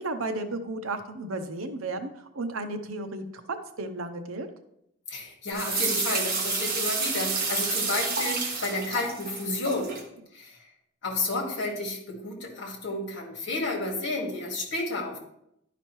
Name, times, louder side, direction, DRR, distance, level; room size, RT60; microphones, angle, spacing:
voice 1, 0.0-4.5, right 2 dB, 85° right, 8 dB, 0.8 m, -34 dB
voice 2, 5.1-9.9 10.3-10.7 11.0-15.2, left 2 dB, 60° left, -1 dB, 1.8 m, -31 dB
sound 1, 5.5-10.0, right 4 dB, 45° right, 1.4 m, -29 dB
11.0 x 5.1 x 3.1 m, 0.78 s
head